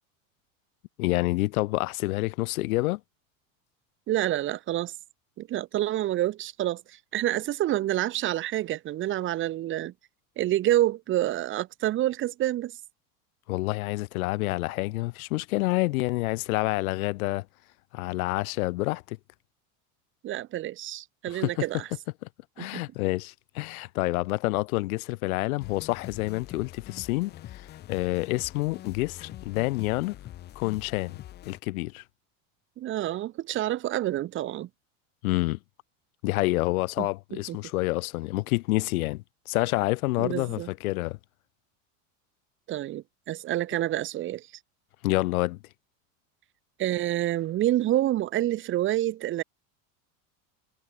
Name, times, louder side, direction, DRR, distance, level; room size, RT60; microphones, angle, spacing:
voice 1, 1.0-3.0 13.5-17.5 17.9-19.2 21.3-21.6 22.6-30.2 30.6-31.2 31.4-32.0 35.2-35.6 36.2-41.2 45.0-45.6, left 21 dB, 90° left, 0.6 m, -28 dB
voice 2, 4.1-4.9 5.4-9.9 10.4-12.7 20.2-21.9 22.6-22.8 32.8-34.7 37.0-37.6 40.2-40.7 42.7-44.5 46.8-49.4, right 14 dB, 30° right, 0.6 m, -28 dB
sound 1, 25.6-31.6, left 13 dB, 25° left, 0.5 m, -44 dB
supercardioid pair, 120°, 42 cm